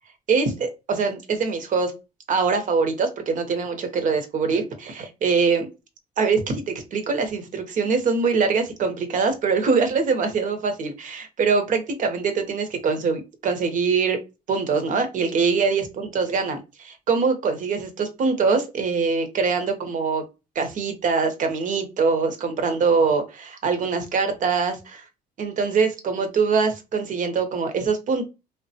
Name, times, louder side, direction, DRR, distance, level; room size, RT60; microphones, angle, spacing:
voice 1, 0.3-1.9 2.3-5.7 6.2-14.2 14.5-20.2 20.5-25.0 25.4-28.2, right 5 dB, 50° right, 6 dB, 0.8 m, -23 dB
3.3 x 2.2 x 2.7 m, 0.27 s
cardioid pair, 110°, 17 cm